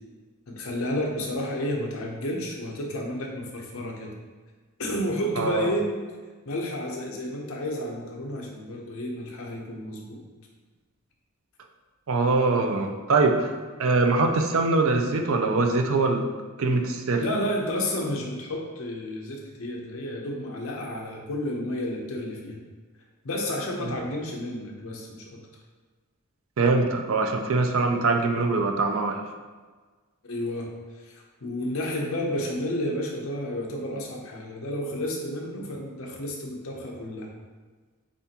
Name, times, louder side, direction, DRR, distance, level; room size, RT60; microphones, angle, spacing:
voice 1, 0.5-4.1 4.8-5.9 6.5-10.2 17.2-22.6 23.2-25.4 30.2-30.7 31.1-37.3, left 1 dB, 70° left, 0 dB, 0.8 m, -31 dB
voice 2, 5.4-5.7 12.1-16.3 16.6-17.3 23.8-24.0 26.6-29.2, right 3 dB, 65° right, 4 dB, 0.5 m, -23 dB
6.9 x 2.5 x 2.9 m, 1.4 s
head